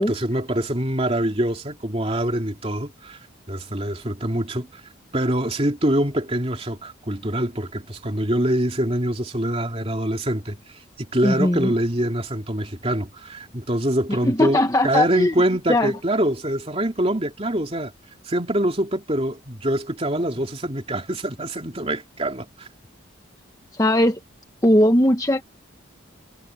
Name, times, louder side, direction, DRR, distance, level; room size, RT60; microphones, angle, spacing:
voice 1, 0.0-3.2 3.5-4.8 5.1-10.6 11.0-17.9 18.3-22.7, right 1 dB, 30° right, 2.8 m, -24 dB
voice 2, 11.2-11.7 14.1-15.3 15.7-15.9 23.7-24.2 24.6-25.4, left 1 dB, 20° left, 1.0 m, -19 dB
head